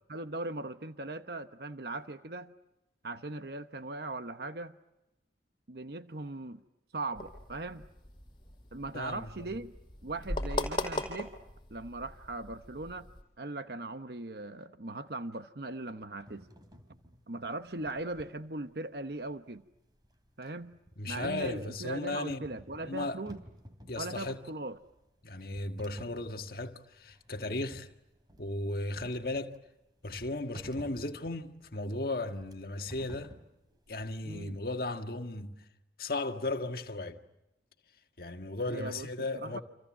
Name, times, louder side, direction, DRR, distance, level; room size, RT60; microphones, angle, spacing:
voice 1, 0.1-2.5 3.0-4.7 5.7-6.6 6.9-7.9 8.7-9.7 10.0-11.3 11.7-13.1 13.4-16.5 17.3-19.6 20.4-20.8 21.1-23.4 23.9-24.8 34.2-34.6 38.7-39.1 39.3-39.6, right 2 dB, 60° right, 1.0 m, -39 dB
sound 1, 7.2-13.2, left 1 dB, 25° left, 5.1 m, -39 dB
voice 2, 8.9-9.3 21.0-22.4 22.8-23.2 23.9-24.4 25.2-27.9 28.4-29.6 30.0-33.3 33.9-35.5 36.0-37.2 38.2-39.6, left 2 dB, 55° left, 1.7 m, -36 dB
sound 2, 16.2-34.6, equal, 20° right, 3.2 m, -53 dB
29.5 x 27.0 x 7.5 m
head